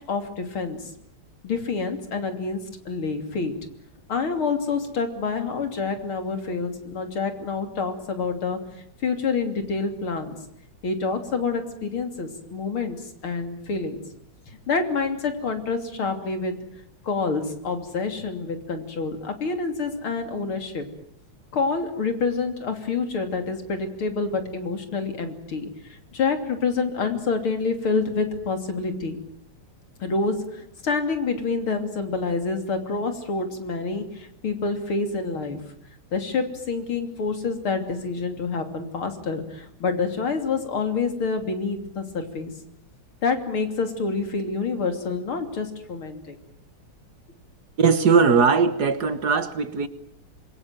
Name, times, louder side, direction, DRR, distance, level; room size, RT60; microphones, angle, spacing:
voice 1, 0.1-0.8 1.4-3.6 4.1-8.6 9.0-10.3 10.8-14.0 14.7-16.6 17.0-20.9 21.5-29.2 30.0-35.6 36.1-42.5 43.2-46.4, left 4 dB, 90° left, 6 dB, 3.9 m, -27 dB
voice 2, 47.8-49.9, right 5 dB, 55° right, 12 dB, 1.8 m, -19 dB
26.5 x 23.0 x 9.2 m, 0.71 s
omnidirectional pair, 2.3 m